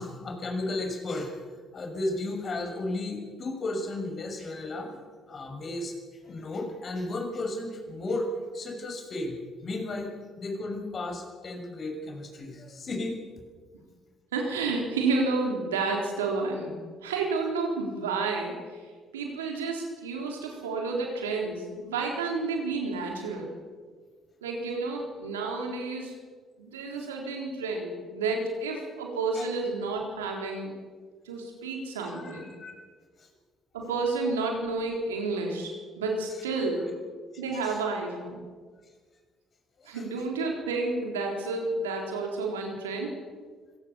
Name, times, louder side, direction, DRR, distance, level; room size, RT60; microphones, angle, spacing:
voice 1, 0.0-1.3 1.7-5.0 5.3-5.9 6.2-8.3 8.5-13.2 29.3-29.4 32.0-32.8 33.2-33.3 37.6-37.8 39.8-40.0, left 2 dB, 45° left, 2 dB, 6.6 m, -34 dB
voice 2, 14.3-16.8 17.0-18.8 19.1-23.5 24.4-26.1 26.6-30.7 31.3-32.5 33.7-37.0 37.4-38.4 39.8-43.2, right 3 dB, 90° right, 1 dB, 3.8 m, -30 dB
25.5 x 18.0 x 7.1 m, 1.5 s
hypercardioid pair, 50°, 0 cm